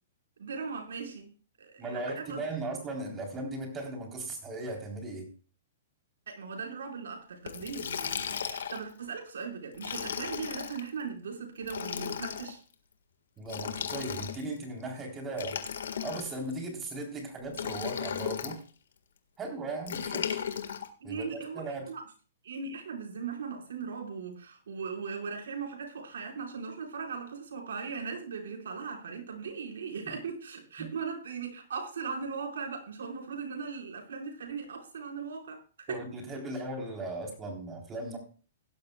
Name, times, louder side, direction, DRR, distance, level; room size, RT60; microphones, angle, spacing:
voice 1, 0.4-1.3 1.6-2.4 6.3-12.6 21.0-22.0 22.4-36.0, right 5 dB, 85° right, 4.9 m, -38 dB
voice 2, 1.8-5.3 13.4-15.6 16.0-18.6 19.4-20.4 21.0-21.9 30.1-30.2 35.9-38.2, right 2 dB, 20° right, 3.7 m, -37 dB
Liquid, 7.5-8.9 9.7-10.8 11.6-12.5 13.4-14.6 15.3-16.5 17.5-18.6 19.9-20.9, left 8 dB, 85° left, 1.7 m, -35 dB
17.0 x 12.0 x 2.3 m
hypercardioid pair, 150°, 0 cm